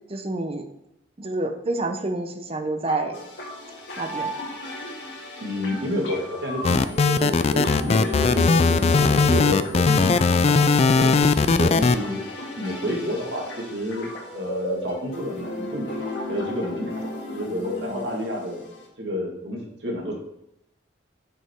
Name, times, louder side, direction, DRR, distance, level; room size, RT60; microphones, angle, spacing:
voice 1, 0.1-0.7 1.2-3.2 4.0-4.3 11.4-11.6, right 2 dB, 35° right, 5 dB, 0.8 m, -28 dB
sound 1, 2.9-18.9, left 1 dB, 80° left, 1.9 m, -35 dB
voice 2, 5.4-11.1 11.5-12.2 12.6-15.9 16.3-16.9 17.3-18.7 19.0-20.1, equal, 80° right, -2 dB, 2.2 m, -30 dB
sound 2, 6.6-12.0, left 4 dB, 35° left, 0.3 m, -18 dB
6.1 x 5.5 x 4.6 m, 0.83 s
head